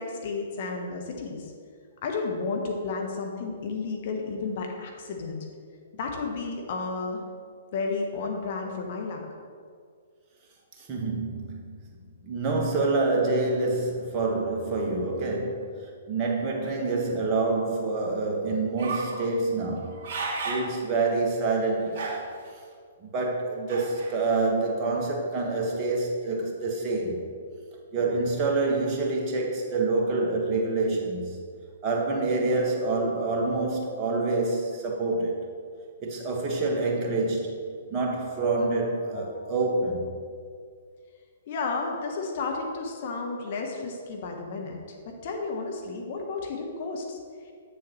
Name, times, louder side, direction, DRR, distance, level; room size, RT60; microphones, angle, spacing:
voice 1, 0.0-1.5 2.0-5.4 5.9-7.2 7.7-9.2 39.1-39.3 41.5-44.8 45.2-47.2, left 4 dB, 45° left, 2 dB, 0.9 m, -32 dB
voice 2, 10.9-11.7 12.2-15.6 16.1-19.9 20.4-22.1 23.1-27.2 27.9-31.3 31.8-35.4 36.0-37.5 37.9-40.1, right 3 dB, 30° right, -1 dB, 1.3 m, -27 dB
sound 1, 18.8-19.2 19.8-20.7 21.2-21.3 21.9-22.5 23.7-24.1, right 3 dB, 45° right, 2.0 m, -33 dB
7.7 x 7.1 x 3.0 m, 2.1 s
figure-of-eight pair, 120°, 0 cm